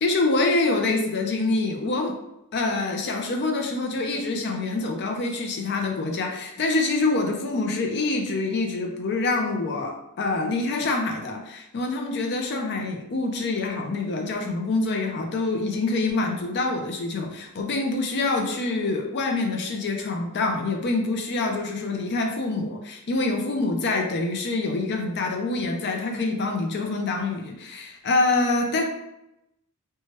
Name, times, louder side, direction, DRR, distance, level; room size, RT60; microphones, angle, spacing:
voice 1, 0.0-2.1 2.5-28.8, left 3 dB, 50° left, 3 dB, 0.5 m, -26 dB
2.8 x 2.2 x 3.0 m, 0.87 s
head